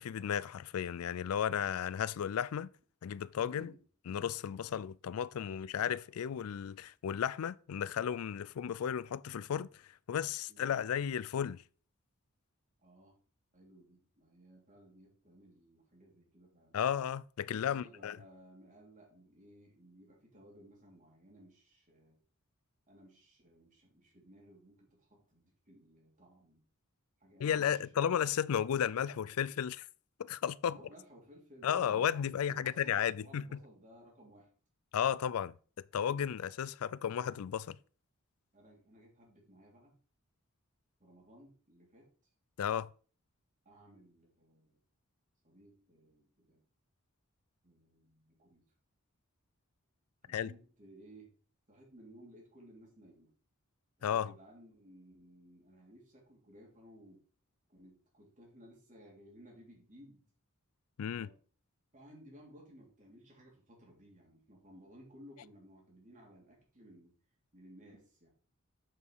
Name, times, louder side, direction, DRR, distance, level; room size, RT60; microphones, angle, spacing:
voice 1, 0.0-2.7 3.0-3.7 4.1-9.7 10.1-11.6 16.7-18.2 27.4-29.9 30.2-30.8 31.6-33.6 34.9-35.5 35.9-37.8 42.6-42.9 50.3-50.5 54.0-54.3 61.0-61.3, left 8 dB, 80° left, 0.4 m, -34 dB
voice 2, 3.4-3.8 10.5-10.8 12.8-13.2 13.5-16.8 17.5-22.2 22.9-26.6 27.2-28.3 30.6-34.5 38.5-40.0 41.0-42.1 43.6-44.8 45.4-46.6 47.6-48.6 50.2-51.3 51.7-53.3 54.0-57.2 57.7-60.3 61.1-61.4 61.9-67.1 67.5-68.3, equal, 35° right, 3.0 m, -58 dB
7.7 x 4.9 x 4.7 m
head